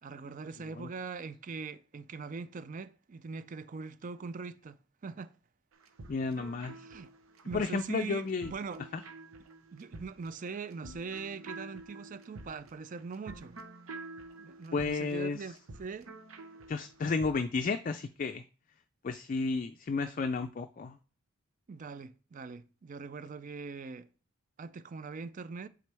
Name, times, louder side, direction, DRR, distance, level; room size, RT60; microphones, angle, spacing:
voice 1, 0.0-4.8 5.0-5.3 6.7-7.1 7.4-8.9 9.7-13.6 14.4-16.1 21.7-24.1 24.6-25.7, right 4 dB, 40° right, 0.4 m, -42 dB
sound 1, 5.7-17.4, right 2 dB, 85° right, 0.9 m, -49 dB
voice 2, 6.1-6.7 7.5-8.5 8.9-9.0 14.7-15.4 16.7-18.4 19.0-21.0, left 4 dB, 40° left, 0.3 m, -32 dB
8.2 x 3.7 x 3.4 m
head